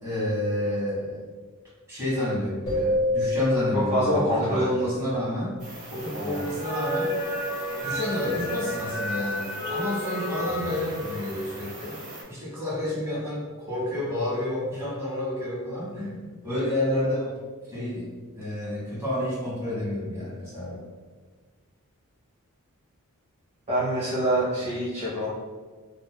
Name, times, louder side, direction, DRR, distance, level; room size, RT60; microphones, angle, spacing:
voice 1, 0.0-1.2 1.9-5.6 5.9-7.2 7.8-12.0 12.3-16.2 16.4-17.4 17.7-20.8, left 1 dB, 10° right, -9 dB, 1.3 m, -29 dB
sound 1, 2.7-5.3, left 1 dB, 20° left, 1.0 m, -28 dB
voice 2, 3.9-4.7 6.1-6.4 23.7-25.3, equal, 30° right, -11 dB, 1.1 m, -25 dB
sound 2, 5.6-12.2, equal, 55° right, 1.2 m, -32 dB
3.9 x 2.8 x 2.2 m, 1.4 s
head